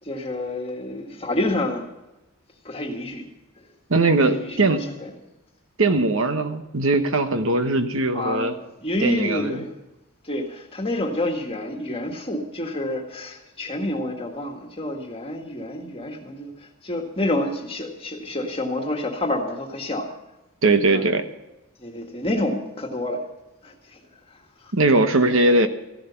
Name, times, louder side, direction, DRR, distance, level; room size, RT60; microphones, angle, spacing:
voice 1, 0.0-1.8 2.6-3.3 4.2-5.1 5.9-6.0 8.1-9.7 10.2-20.1 20.9-21.1 21.8-23.2 23.6-24.0 24.3-24.4, left 1 dB, 25° left, 2 dB, 1.8 m, -28 dB
voice 2, 3.9-4.8 5.8-8.5 9.0-9.6 20.6-21.2 24.7-25.7, right 2 dB, 60° right, 8 dB, 1.2 m, -20 dB
15.0 x 11.5 x 5.7 m, 0.97 s
head